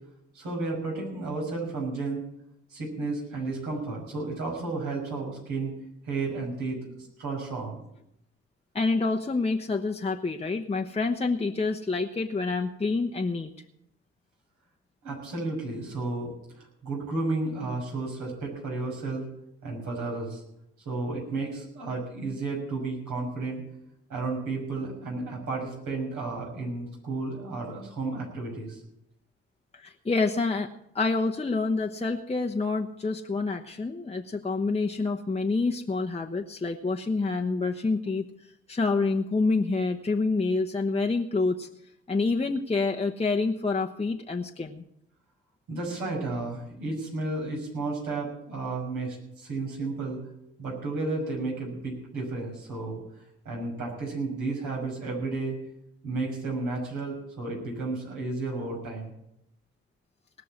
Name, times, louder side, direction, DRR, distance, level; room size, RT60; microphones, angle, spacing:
voice 1, 0.3-2.2 2.7-5.7 6.0-7.8 15.0-19.3 19.6-20.4 20.8-23.6 24.1-28.8 45.7-50.2 50.6-53.0 53.4-55.6 56.0-59.1, right 3 dB, 70° right, -2 dB, 6.1 m, -32 dB
voice 2, 8.7-13.5 29.7-30.7 30.9-38.3 38.7-41.7 42.1-44.8, left 3 dB, 20° left, 3 dB, 1.1 m, -27 dB
19.0 x 6.4 x 8.5 m, 0.79 s
hypercardioid pair, 45°, 31 cm